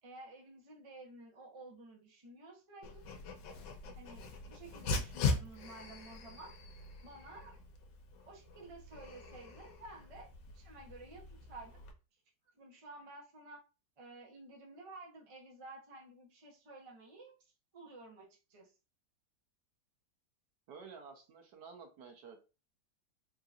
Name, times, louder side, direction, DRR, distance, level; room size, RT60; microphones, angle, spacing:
voice 1, 0.0-3.0 3.9-6.5 7.0-7.5 8.3-10.3 10.5-11.8 12.6-13.6 14.0-18.7, right 2 dB, 30° right, -1 dB, 0.6 m, -53 dB
Dog, 2.8-11.9, left 3 dB, 80° left, 1.3 m, -41 dB
voice 2, 20.7-22.4, right 5 dB, 70° right, 3 dB, 1.3 m, -51 dB
3.7 x 2.8 x 2.4 m, 0.31 s
omnidirectional pair, 1.9 m